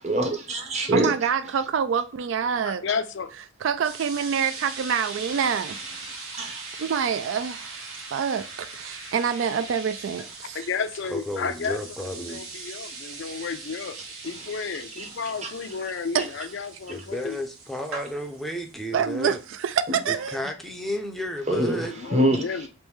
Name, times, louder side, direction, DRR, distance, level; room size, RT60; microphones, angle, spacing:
voice 1, 0.0-1.1 6.4-6.7 15.0-15.1 15.4-15.5 19.9-20.0 21.5-22.4, right 1 dB, 30° right, 0.8 m, -25 dB
voice 2, 0.9-2.8 3.6-5.8 6.8-10.7 16.1-16.3 18.9-20.4, right 7 dB, 65° right, 0.3 m, -26 dB
voice 3, 2.6-3.3 10.5-14.0 14.2-17.4 21.7-22.7, left 5 dB, 60° left, 0.5 m, -32 dB
sound 1, 3.8-20.3, right 3 dB, 80° right, 1.4 m, -41 dB
voice 4, 11.1-12.4 16.9-19.4 20.1-21.9, equal, ahead, 0.5 m, -32 dB
3.4 x 3.1 x 3.1 m
head